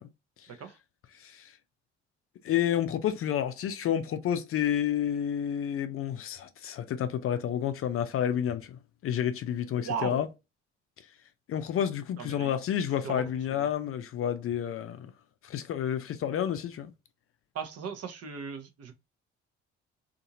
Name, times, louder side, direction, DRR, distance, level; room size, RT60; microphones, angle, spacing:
voice 1, 1.1-1.6 2.4-10.3 11.5-15.1 15.4-16.9, left 9 dB, 40° left, 0.5 m, -30 dB
voice 2, 9.8-10.2 12.2-12.5 13.0-13.2 13.5-13.7 17.5-18.9, right 6 dB, 50° right, 0.8 m, -37 dB
2.7 x 2.5 x 2.5 m
hypercardioid pair, 45°, 33 cm